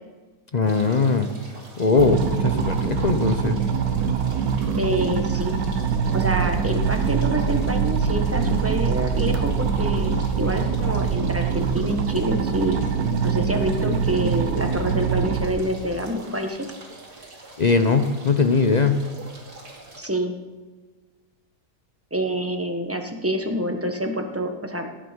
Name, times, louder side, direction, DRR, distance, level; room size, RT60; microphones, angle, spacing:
voice 1, 0.5-1.3 1.8-3.6 17.6-19.0, left 4 dB, 45° left, 8 dB, 0.6 m, -20 dB
sound 1, 0.7-20.0, right 2 dB, 90° right, 3.1 m, -45 dB
sound 2, 2.0-15.5, right 6 dB, 70° right, 1.4 m, -24 dB
sound 3, 4.6-12.4, right 5 dB, 85° left, 4.0 m, -32 dB
voice 2, 4.8-5.6 6.1-12.8 13.2-16.6 20.0-20.3 22.1-24.9, right 1 dB, 10° right, 4 dB, 1.2 m, -27 dB
17.5 x 7.5 x 5.2 m, 1.3 s
omnidirectional pair, 1.6 m